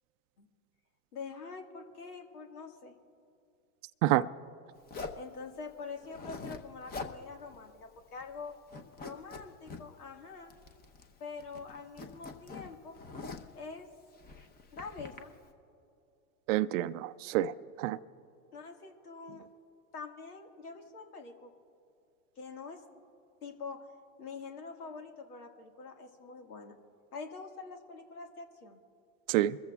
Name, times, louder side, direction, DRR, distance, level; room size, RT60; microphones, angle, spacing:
voice 1, 1.1-3.0 5.2-8.6 9.0-10.5 11.2-13.0 13.5-13.9 14.7-15.3 18.5-19.5 19.9-21.5 22.4-23.0 23.4-23.8 24.2-26.8 27.1-28.8, left 4 dB, 90° left, 1.9 m, -45 dB
Zipper (clothing), 4.9-5.3 6.0-7.2 7.5-7.6 8.0-8.4 8.7-9.8 10.5-11.1 11.4-13.6 14.2-15.2, left 4 dB, 20° left, 0.9 m, -44 dB
voice 2, 16.5-18.0 29.3-29.6, right 15 dB, 60° right, 0.5 m, -28 dB
24.0 x 14.5 x 2.4 m
hypercardioid pair, 115°, 44 cm